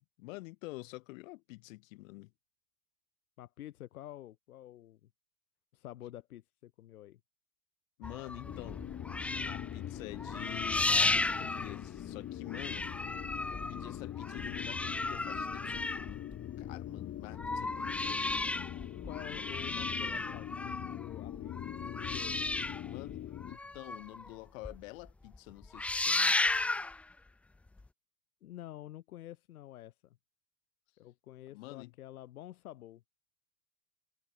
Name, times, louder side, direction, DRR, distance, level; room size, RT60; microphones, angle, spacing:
voice 1, 0.2-2.3 8.0-8.8 9.5-12.9 13.5-18.5 22.8-26.5 31.5-31.9, left 21 dB, 65° left, 6.2 m, -48 dB
voice 2, 3.4-5.1 5.7-7.2 19.0-21.7 22.0-22.5 28.4-30.2 31.0-33.0, left 13 dB, 85° left, 3.6 m, -49 dB
sound 1, 8.0-12.3 12.5-16.7 17.2-24.3 24.6-24.8 25.1-25.4 25.6-27.0 27.8-27.9, left 2 dB, 5° left, 0.3 m, -34 dB
sound 2, 8.4-23.6, left 12 dB, 30° left, 3.4 m, -42 dB
supercardioid pair, 130°, 42 cm